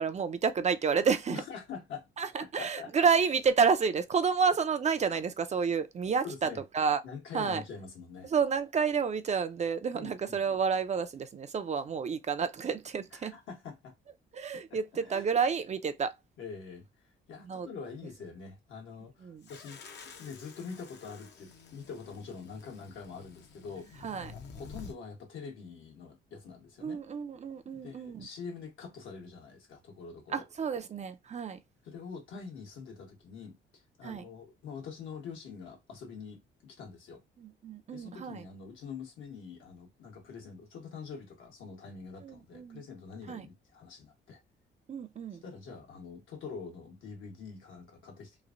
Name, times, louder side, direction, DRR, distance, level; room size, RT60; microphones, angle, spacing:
voice 1, 0.0-1.4 2.2-7.0 7.3-7.6 8.3-13.4 14.3-16.1 17.4-17.7 19.2-19.4 24.0-24.3 26.8-28.3 30.3-31.6 34.0-34.2 37.4-38.4 42.2-42.8 43.3-43.5 44.9-45.4, right 6 dB, 35° right, 0.4 m, -30 dB
voice 2, 1.3-2.1 2.4-3.1 6.2-6.6 7.0-8.3 9.9-10.4 13.1-13.9 15.0-15.2 16.4-19.8 20.2-27.0 27.6-30.4 31.8-37.2 37.9-44.4 45.4-48.4, left 5 dB, 75° left, 1.2 m, -45 dB
sound 1, 19.4-25.0, left 5 dB, 60° left, 0.7 m, -50 dB
3.1 x 2.5 x 2.5 m
cardioid pair, 90°, 20 cm